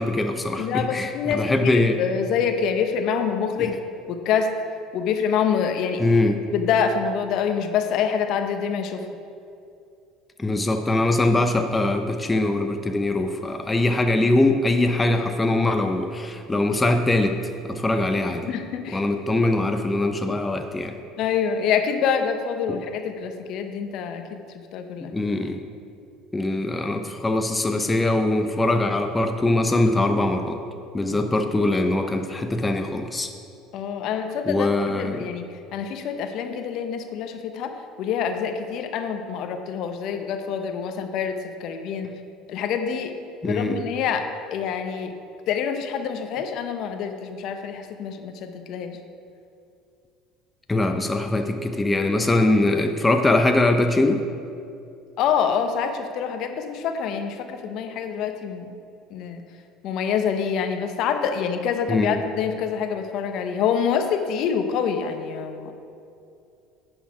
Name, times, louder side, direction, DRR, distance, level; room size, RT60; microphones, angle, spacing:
voice 1, 0.0-2.0 3.6-3.7 6.0-6.4 10.4-17.4 17.7-18.5 18.9-20.9 22.7-22.8 25.1-25.6 26.3-30.6 30.9-33.3 34.5-35.2 43.4-43.8 50.7-54.2 61.9-62.2, left 2 dB, 15° left, 5 dB, 0.6 m, -22 dB
voice 2, 0.6-3.8 4.1-4.5 4.9-6.0 6.5-9.0 18.5-19.0 21.2-24.4 24.7-25.1 33.7-35.4 35.7-42.1 42.5-43.1 43.4-45.1 45.5-49.0 55.2-58.7 59.1-59.4 59.8-65.7, left 7 dB, 60° left, 6 dB, 0.8 m, -26 dB
10.0 x 6.4 x 4.8 m, 2.5 s
supercardioid pair, 90°, 0 cm